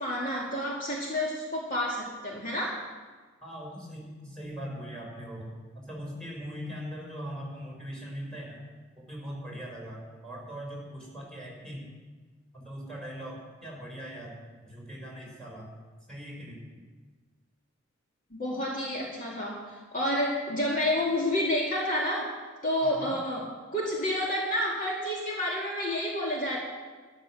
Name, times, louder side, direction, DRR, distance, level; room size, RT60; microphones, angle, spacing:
voice 1, 0.0-2.8 18.3-22.3 22.6-26.6, left 1 dB, 40° left, -4 dB, 2.2 m, -29 dB
voice 2, 3.4-8.6 9.0-11.9 12.5-15.7 16.1-16.8 22.8-23.2, equal, 5° left, -3 dB, 5.2 m, -41 dB
13.0 x 11.5 x 6.4 m, 1.4 s
head